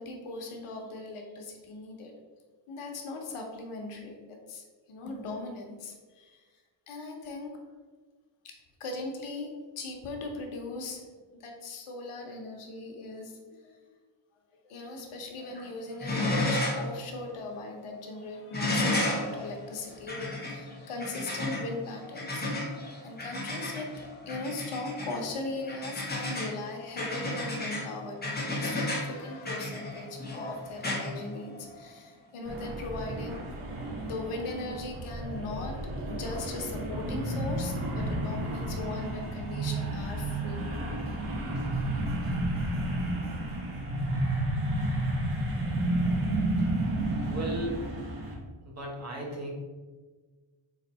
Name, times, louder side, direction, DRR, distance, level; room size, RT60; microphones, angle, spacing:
voice 1, 0.0-2.1 2.7-6.4 6.9-7.5 8.4-8.5 8.8-11.0 11.3-13.8 14.6-22.7 23.0-23.9 24.3-33.5 34.0-35.7 36.1-41.0, left 2 dB, 90° left, 2 dB, 0.9 m, -39 dB
sound 1, 15.4-15.7 16.0-16.9 17.3-17.4 18.5-31.9 33.3-33.4, left 1 dB, 20° left, 0.8 m, -33 dB
sound 2, 32.5-48.4, right 1 dB, 80° right, 1.2 m, -31 dB
voice 2, 47.3-47.8 48.7-49.5, right 1 dB, 35° right, -2 dB, 0.8 m, -35 dB
4.0 x 2.6 x 4.1 m, 1.4 s
wide cardioid pair, 155°, 49 cm